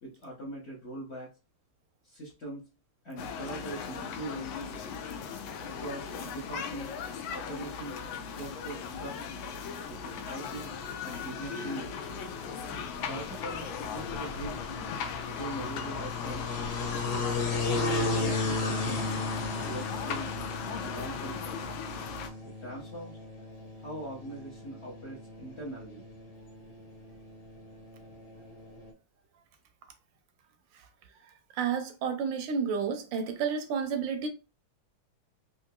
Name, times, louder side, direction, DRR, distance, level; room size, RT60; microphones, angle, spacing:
voice 1, 0.0-1.3 2.0-2.6 3.0-4.5 5.6-6.9 7.3-7.9 8.4-9.2 9.9-10.7 11.0-11.9 13.1-14.6 15.3-16.5 17.5-19.1 19.6-20.3 20.8-21.8 22.6-23.2 23.8-26.0, right 1 dB, 45° left, 0.9 m, -41 dB
sound 1, 3.2-22.3, left 6 dB, 90° left, 1.4 m, -38 dB
sound 2, 10.8-28.9, left 3 dB, 75° left, 1.6 m, -36 dB
voice 2, 31.6-34.3, right 6 dB, 80° right, 1.3 m, -30 dB
3.7 x 2.9 x 2.2 m
omnidirectional pair, 2.1 m